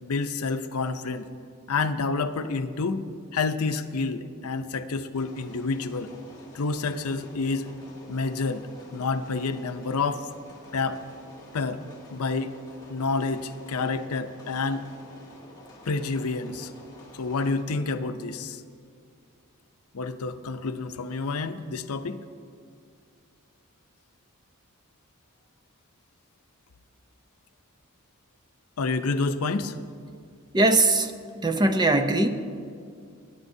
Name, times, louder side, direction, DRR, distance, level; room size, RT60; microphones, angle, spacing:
voice 1, 0.0-1.3 1.7-3.0 3.3-6.1 6.5-7.7 8.1-10.3 10.7-11.0 11.5-11.8 12.1-12.5 12.9-14.9 15.9-16.7 17.2-18.6 19.9-22.2 28.8-29.8, left 4 dB, 80° left, 10 dB, 0.6 m, -28 dB
sound 1, 5.1-17.6, left 1 dB, 20° left, 2.5 m, -49 dB
voice 2, 30.5-32.3, right 2 dB, 20° right, 8 dB, 0.6 m, -21 dB
21.5 x 10.5 x 2.7 m, 2.3 s
head